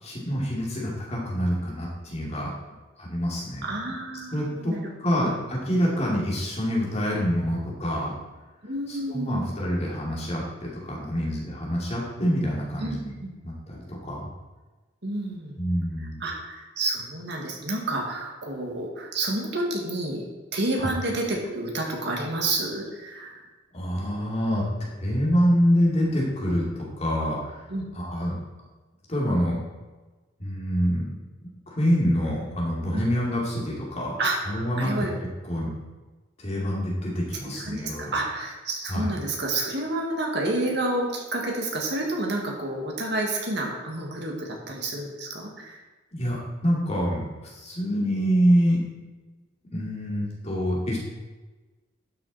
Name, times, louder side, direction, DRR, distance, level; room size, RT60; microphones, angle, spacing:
voice 1, 0.0-2.5 3.0-3.6 4.3-8.1 8.9-13.1 13.4-14.3 15.6-16.2 20.8-20.9 23.7-27.6 27.9-28.4 29.1-29.6 30.4-31.1 31.7-34.1 34.4-35.1 35.5-35.7 36.4-38.2 38.9-39.1 46.1-48.8 49.7-51.0, equal, 35° left, -4 dB, 2.8 m, -26 dB
voice 2, 3.6-4.8 5.2-5.3 8.6-9.5 12.8-13.3 15.0-15.6 16.0-16.3 16.8-20.2 20.5-23.4 27.7-27.8 32.9-33.0 34.2-34.4 34.8-35.1 37.4-45.8, right 2 dB, 60° right, 0 dB, 2.1 m, -29 dB
12.0 x 6.5 x 4.3 m, 1.2 s
head